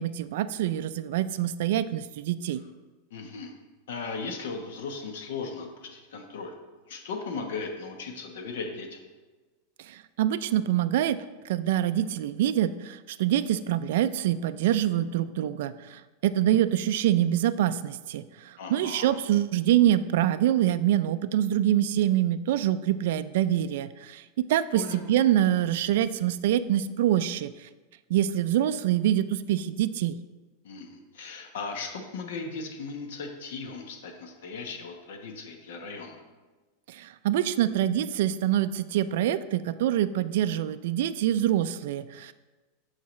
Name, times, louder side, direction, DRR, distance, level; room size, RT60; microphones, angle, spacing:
voice 1, 0.0-2.6 9.8-11.2 11.4-27.7 28.1-30.2 36.9-42.3, right 12 dB, 60° right, 11 dB, 0.3 m, -25 dB
voice 2, 3.1-3.5 3.9-6.5 6.9-9.0 18.6-19.2 24.7-25.0 30.6-36.2, left 4 dB, 70° left, 4 dB, 1.1 m, -37 dB
13.0 x 4.6 x 3.2 m, 1.3 s
supercardioid pair, 175°, 0 cm